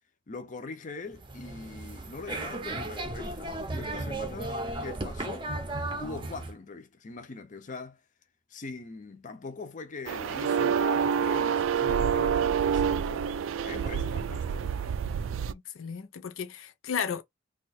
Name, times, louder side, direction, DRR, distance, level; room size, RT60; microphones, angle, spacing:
voice 1, 0.3-5.5 6.0-8.0 8.5-13.3 13.6-14.8, left 4 dB, 40° left, 0.6 m, -42 dB
sound 1, 1.1-6.5, right 2 dB, 25° right, 0.6 m, -35 dB
sound 2, 10.1-15.5, right 7 dB, 85° right, 0.3 m, -27 dB
voice 2, 15.5-17.2, left 7 dB, 90° left, 0.5 m, -34 dB
2.8 x 2.3 x 4.1 m
head